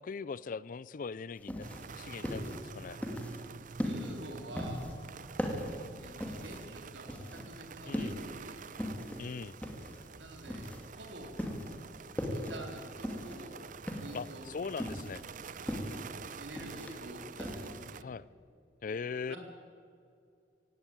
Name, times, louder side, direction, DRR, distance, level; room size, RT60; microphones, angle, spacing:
voice 1, 0.0-1.7 2.0-3.0 7.9-8.1 9.2-9.6 14.1-15.2 18.0-18.2 18.8-19.3, left 5 dB, 45° left, 21 dB, 0.4 m, -40 dB
sound 1, 1.4-17.8, equal, 10° left, 2.5 m, -39 dB
sound 2, 1.6-18.0, right 5 dB, 45° right, 0.5 m, -48 dB
voice 2, 3.8-4.8 6.0-8.6 10.2-11.3 12.3-13.6 13.9-14.5 15.6-18.1 19.3-19.4, right 1 dB, 70° right, 2 dB, 4.0 m, -48 dB
17.5 x 16.5 x 8.9 m, 2.5 s
head